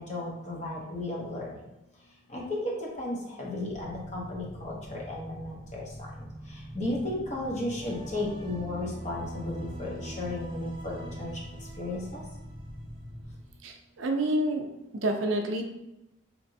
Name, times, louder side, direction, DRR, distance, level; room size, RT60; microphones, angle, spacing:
voice 1, 0.0-1.6 2.3-11.4 11.8-12.2, left 1 dB, 35° left, -3 dB, 0.7 m, -34 dB
sound 1, 3.7-13.4, equal, 60° left, 1.2 m, -44 dB
sound 2, 7.8-13.2, equal, 25° right, 0.6 m, -44 dB
voice 2, 13.6-14.7 14.9-15.6, right 1 dB, 70° right, 3 dB, 0.4 m, -28 dB
3.2 x 2.9 x 2.6 m, 0.90 s
head